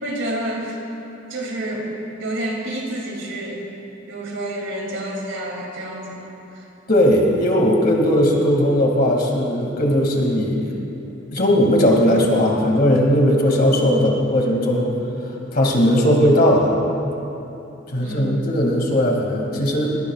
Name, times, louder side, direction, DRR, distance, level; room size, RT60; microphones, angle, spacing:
voice 1, 0.0-0.8 1.3-3.6 4.1-6.6 18.0-18.4, right 1 dB, 65° right, -1 dB, 2.8 m, -29 dB
voice 2, 6.9-10.7 11.3-14.9 15.3-16.8 17.9-19.9, equal, 50° left, -1 dB, 2.4 m, -18 dB
21.0 x 20.5 x 2.4 m, 2.9 s
head